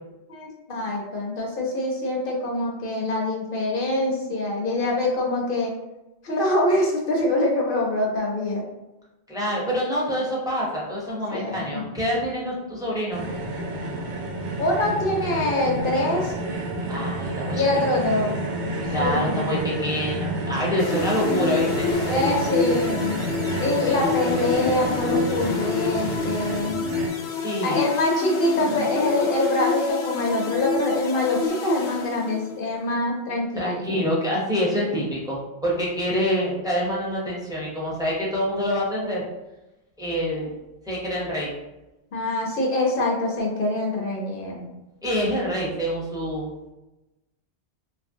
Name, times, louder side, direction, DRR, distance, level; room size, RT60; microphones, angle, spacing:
voice 1, 0.3-5.7 6.2-8.6 11.3-11.8 14.6-16.4 17.5-18.4 19.0-19.5 22.1-23.2 23.6-26.8 27.6-33.8 42.1-44.7, left 2 dB, 60° left, -1 dB, 0.8 m, -24 dB
voice 2, 9.3-13.3 16.9-17.7 18.8-22.3 23.9-24.0 27.4-27.8 33.5-39.2 40.0-40.5 40.9-41.5 45.0-46.5, equal, 5° right, -5 dB, 0.6 m, -26 dB
sound 1, 13.1-27.1, right 1 dB, 90° right, 0.9 m, -30 dB
sound 2, 20.8-32.7, left 4 dB, 85° left, 0.9 m, -28 dB
2.8 x 2.5 x 2.6 m, 0.99 s
omnidirectional pair, 1.1 m